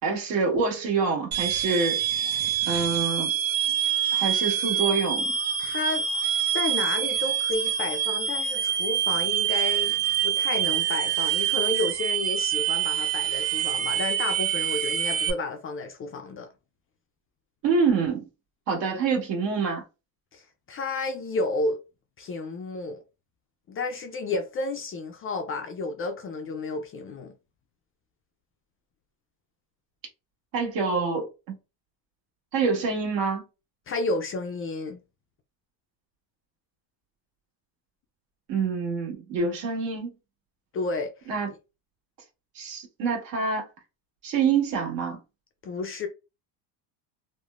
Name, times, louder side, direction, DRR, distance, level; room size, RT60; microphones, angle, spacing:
voice 1, 0.0-2.0 2.7-3.3 4.1-5.3 17.6-18.2 18.7-19.8 30.5-31.6 32.5-33.4 38.5-40.1 41.3-41.5 42.5-43.7 44.2-45.2, right 5 dB, 65° right, 1.4 m, -26 dB
sound 1, 1.3-15.3, right 10 dB, 80° right, 0.8 m, -26 dB
voice 2, 5.6-6.1 6.5-16.5 20.3-21.8 22.2-23.0 23.7-27.3 33.9-35.0 40.7-41.1 45.6-46.1, left 3 dB, 30° left, 0.3 m, -31 dB
3.3 x 2.1 x 2.3 m
supercardioid pair, 115°, 48 cm